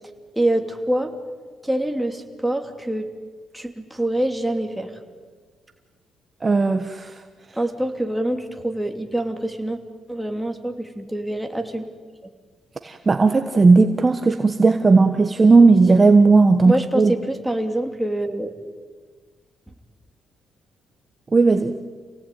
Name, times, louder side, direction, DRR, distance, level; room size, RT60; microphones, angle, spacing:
voice 1, 0.3-1.1 1.6-3.0 3.5-4.9 7.6-9.8 10.1-11.8 16.6-18.5, right 1 dB, 5° right, 4 dB, 2.8 m, -25 dB
voice 2, 6.4-7.1 12.8-17.1 21.3-21.8, right 3 dB, 30° right, 7 dB, 1.2 m, -15 dB
27.5 x 18.0 x 9.3 m, 1.5 s
cardioid pair, 90°, 0 cm